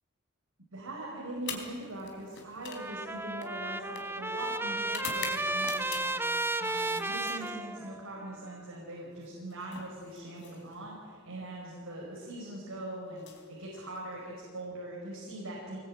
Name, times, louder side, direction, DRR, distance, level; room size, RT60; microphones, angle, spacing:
voice 1, 0.7-15.8, right 1 dB, 75° right, -3 dB, 5.1 m, -42 dB
sound 1, 1.4-6.3 6.7-7.9 9.1-11.0 12.0-12.3 13.1-14.2, left 6 dB, 55° left, 3.8 m, -45 dB
Trumpet, 2.7-8.3, right 2 dB, 10° right, 0.8 m, -33 dB
24.5 x 20.0 x 8.9 m, 2.2 s
head